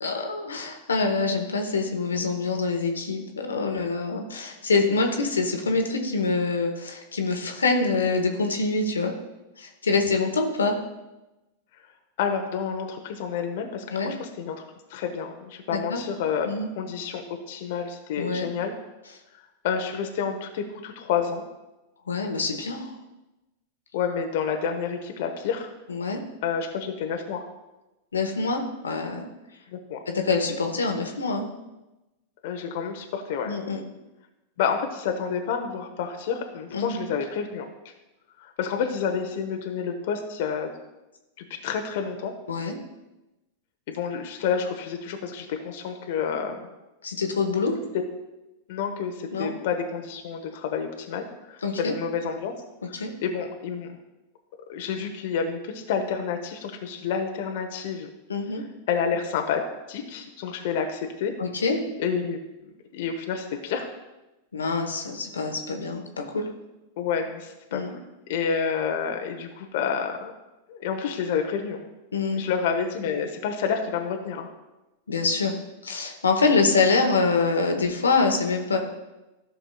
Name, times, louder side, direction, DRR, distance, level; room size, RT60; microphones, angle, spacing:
voice 1, 0.0-9.1 9.6-10.7 13.9-14.1 15.7-16.0 16.4-16.7 18.2-18.5 22.1-22.9 25.9-26.2 28.1-29.3 30.1-31.5 33.5-33.8 36.7-37.0 42.5-42.8 47.0-47.8 49.3-49.5 51.6-51.9 52.9-53.1 58.3-58.6 61.4-61.8 64.5-66.5 67.7-68.0 72.1-72.4 75.1-75.6 75.8-78.8, left 4 dB, 85° left, 4 dB, 1.0 m, -25 dB
voice 2, 12.2-14.6 14.9-16.5 16.8-18.7 19.6-21.4 23.9-25.7 26.4-27.4 29.7-30.0 32.4-33.5 34.6-37.9 38.4-40.7 41.4-42.3 43.9-46.6 48.7-52.5 52.9-53.9 54.7-58.1 58.9-59.6 59.9-61.3 62.0-62.4 62.9-63.9 67.0-67.8 68.3-70.3 70.7-71.8 72.3-74.5, left 6 dB, 60° left, 4 dB, 0.8 m, -29 dB
13.5 x 6.0 x 2.3 m, 1.0 s
hypercardioid pair, 100°, 0 cm